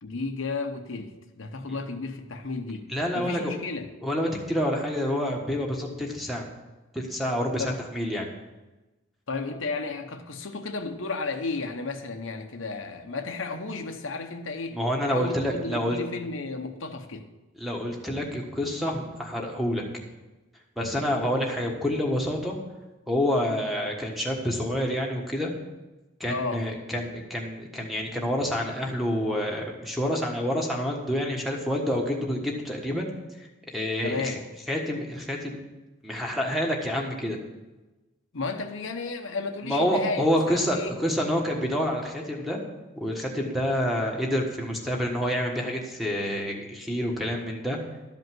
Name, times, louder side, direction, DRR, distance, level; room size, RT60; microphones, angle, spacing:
voice 1, 0.0-2.9 3.1-3.9 7.6-7.8 9.3-14.8 15.1-17.3 26.3-26.7 34.0-34.4 38.3-41.0, left 3 dB, 70° left, 5 dB, 0.9 m, -33 dB
voice 2, 2.9-3.5 4.0-6.5 6.9-7.6 7.9-8.3 14.7-16.0 17.6-19.9 20.8-22.5 23.1-25.5 26.2-33.1 33.7-34.3 34.7-35.6 36.0-37.4 39.6-42.6 43.0-47.8, equal, ahead, 0 dB, 1.3 m, -28 dB
12.5 x 5.3 x 7.7 m, 1.1 s
head